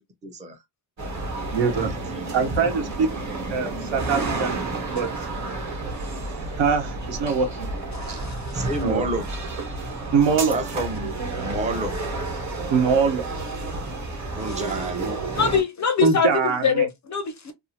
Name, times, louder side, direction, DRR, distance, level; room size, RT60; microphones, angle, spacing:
voice 1, 0.2-0.6 2.1-2.5 8.5-9.3 10.5-11.1 11.4-12.0 14.4-15.2, right 1 dB, 15° right, 0.6 m, -30 dB
sound 1, 1.0-15.6, right 3 dB, 35° right, 1.0 m, -30 dB
voice 2, 1.5-1.9 2.3-3.1 3.5-4.6 4.9-5.1 6.6-7.7 8.1-8.2 8.8-9.0 10.1-10.5 12.7-13.2 16.0-16.9, right 5 dB, 60° right, 1.0 m, -22 dB
voice 3, 7.9-8.6 14.4-14.6 15.3-17.5, left 6 dB, 35° left, 0.5 m, -24 dB
2.7 x 2.4 x 2.7 m
cardioid pair, 115°, 49 cm